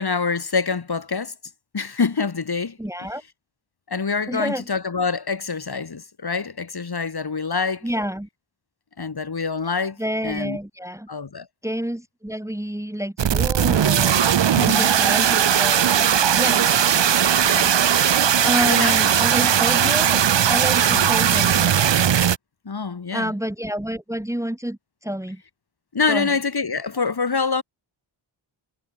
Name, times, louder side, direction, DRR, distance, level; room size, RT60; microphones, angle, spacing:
voice 1, 0.0-1.3 1.7-2.8 3.9-7.9 9.0-10.0 10.2-10.6 11.1-11.5 14.5-14.9 17.4-17.7 18.7-19.0 19.8-19.9 20.9-21.2 22.6-23.3 25.9-27.6, left 5 dB, 50° left, 5.1 m, -25 dB
voice 2, 2.8-3.2 4.3-4.7 7.8-8.3 10.0-11.1 11.6-14.2 14.6-16.1 16.4-16.7 18.4-21.8 23.1-25.4 26.1-26.3, equal, 5° right, 2.4 m, -28 dB
sound 1, 13.2-22.4, right 9 dB, 65° right, 1.0 m, -18 dB
wide cardioid pair, 95°, 48 cm